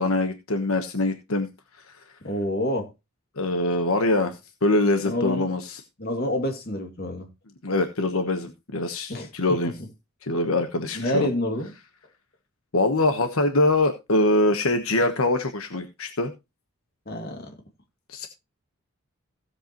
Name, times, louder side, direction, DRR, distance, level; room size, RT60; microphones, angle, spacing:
voice 1, 0.0-1.5 1.8-2.0 3.4-5.8 7.6-9.7 10.2-11.3 12.7-16.3 18.1-18.3, left 2 dB, 75° left, 1.2 m, -24 dB
voice 2, 2.2-2.9 5.0-5.5 6.0-7.3 9.1-9.3 10.9-11.7 17.1-17.5, left 1 dB, 45° left, 2.6 m, -27 dB
16.0 x 8.0 x 3.0 m
head